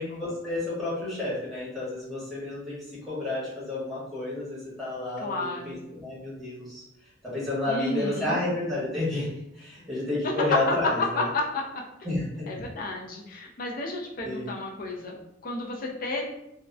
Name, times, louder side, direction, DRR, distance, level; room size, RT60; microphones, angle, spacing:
voice 1, 0.0-2.8 3.1-6.8 7.2-9.3 9.5-11.2 12.0-12.5 14.2-14.5, left 2 dB, ahead, -8 dB, 1.1 m, -31 dB
voice 2, 5.2-5.8 7.7-8.4 11.2-11.6 12.5-16.2, left 2 dB, 50° left, -1 dB, 0.5 m, -33 dB
2.7 x 2.1 x 2.3 m, 0.84 s
head